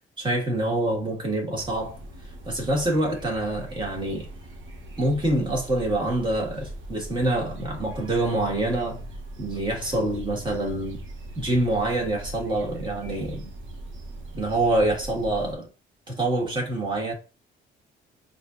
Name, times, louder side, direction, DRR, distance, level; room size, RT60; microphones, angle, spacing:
voice 1, 0.2-2.0 2.4-4.3 5.0-9.0 9.4-11.0 11.3-13.5 14.3-15.7 16.1-17.1, right 1 dB, 25° right, 1.7 m, -26 dB
sound 1, 1.5-15.5, right 1 dB, 80° right, 1.0 m, -40 dB
4.8 x 2.6 x 2.5 m
cardioid pair, 90°, 20 cm